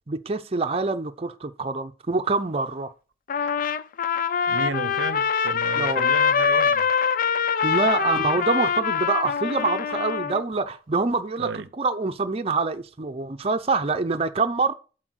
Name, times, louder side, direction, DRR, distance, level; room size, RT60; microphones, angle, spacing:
voice 1, 0.1-2.9 5.8-6.1 7.6-14.7, right 3 dB, 35° right, 0.6 m, -25 dB
Trumpet, 3.3-10.4, left 6 dB, 50° left, 0.4 m, -24 dB
voice 2, 4.5-6.9 11.4-11.7, right 4 dB, 85° right, 0.6 m, -33 dB
7.8 x 4.6 x 6.2 m
head